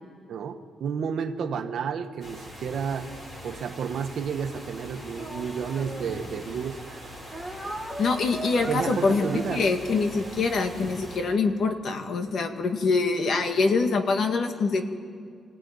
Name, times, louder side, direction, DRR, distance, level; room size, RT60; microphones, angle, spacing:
voice 1, 0.3-3.1 3.4-7.1 8.7-9.8, right 6 dB, 60° right, 7 dB, 1.4 m, -31 dB
sound 1, 2.2-11.2, equal, 25° left, 5.0 m, -42 dB
Speech, 5.1-6.7 7.3-11.3, right 1 dB, 5° left, 2.2 m, -40 dB
voice 2, 8.0-14.9, left 4 dB, 50° left, 6 dB, 1.9 m, -25 dB
26.0 x 17.0 x 9.5 m, 2.3 s
cardioid pair, 140°, 0 cm